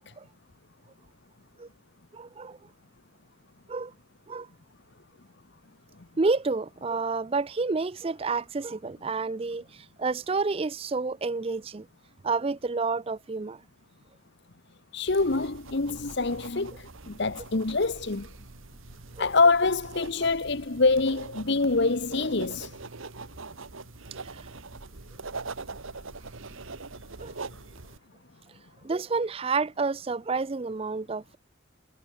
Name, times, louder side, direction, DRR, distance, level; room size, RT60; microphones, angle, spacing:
voice 1, 2.1-2.6 3.7-3.9 4.3-4.5 6.2-11.9 12.2-13.6 19.2-19.3 27.2-27.3 28.8-31.4, right 4 dB, 25° right, 0.4 m, -29 dB
voice 2, 14.9-18.3 19.2-22.8, left 3 dB, 55° left, 1.0 m, -25 dB
sound 1, 15.1-28.0, right 3 dB, 75° right, 1.5 m, -42 dB
head